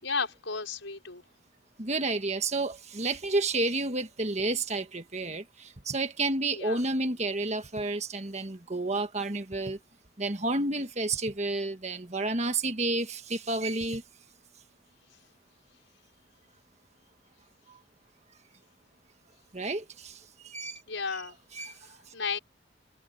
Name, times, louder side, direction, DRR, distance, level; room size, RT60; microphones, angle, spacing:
voice 1, 0.0-1.2 6.5-6.8 20.9-21.4 22.1-22.4, left 5 dB, 75° left, 5.7 m, -33 dB
voice 2, 1.8-9.8 10.2-14.0 17.7-17.8 19.5-20.8 21.5-22.0, right 2 dB, 35° right, 1.6 m, -30 dB
head